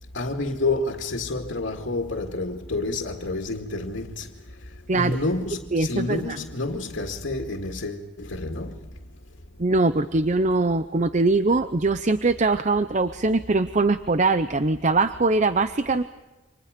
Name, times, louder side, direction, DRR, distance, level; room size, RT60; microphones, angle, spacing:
voice 1, 0.1-4.3 4.9-8.8, left 2 dB, 85° left, 2.2 m, -29 dB
voice 2, 5.7-6.4 9.6-16.0, right 3 dB, 40° right, 0.7 m, -22 dB
30.0 x 26.5 x 5.2 m
head